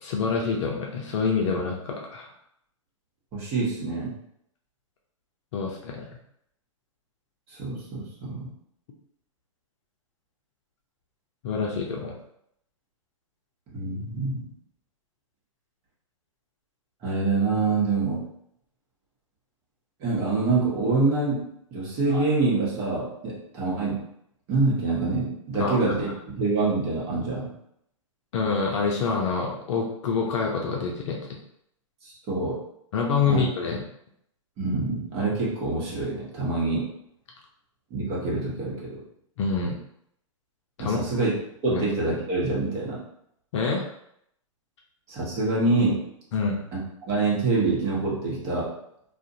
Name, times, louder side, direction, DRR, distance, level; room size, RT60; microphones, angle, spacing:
voice 1, 0.0-2.3 5.5-6.1 11.4-12.1 25.6-25.8 28.3-31.4 32.9-33.8 39.4-39.7 40.8-41.0 41.7-41.8 43.5-43.9 46.3-46.6, left 5 dB, 60° left, -1 dB, 0.5 m, -26 dB
voice 2, 3.3-4.1 7.5-8.5 13.7-14.5 17.0-18.2 20.0-24.0 24.5-27.5 32.3-32.6 33.3-33.4 34.6-36.9 37.9-39.0 40.8-43.0 45.1-46.0 46.7-48.7, right 3 dB, 35° right, -5 dB, 1.0 m, -26 dB
2.4 x 2.2 x 2.7 m, 0.74 s
hypercardioid pair, 110°, 17 cm